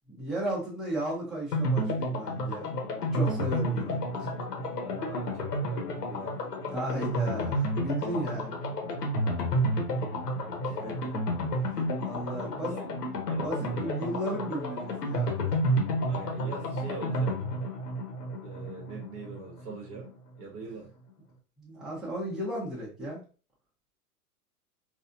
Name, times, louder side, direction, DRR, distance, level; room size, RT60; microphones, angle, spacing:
voice 1, 0.2-2.7 3.1-4.3 6.7-8.5 12.0-12.7 13.4-15.4 21.6-23.2, right 1 dB, ahead, -6 dB, 1.3 m, -34 dB
sound 1, 1.5-20.1 20.4-20.5 20.8-20.9, equal, 80° left, 1.2 m, -31 dB
voice 2, 4.8-6.4 10.6-11.2 12.4-12.9 13.3-14.0 16.1-17.4 18.4-20.1 20.4-20.9, right 3 dB, 30° right, -1 dB, 1.2 m, -43 dB
4.0 x 2.7 x 2.7 m, 0.37 s
hypercardioid pair, 110°, 47 cm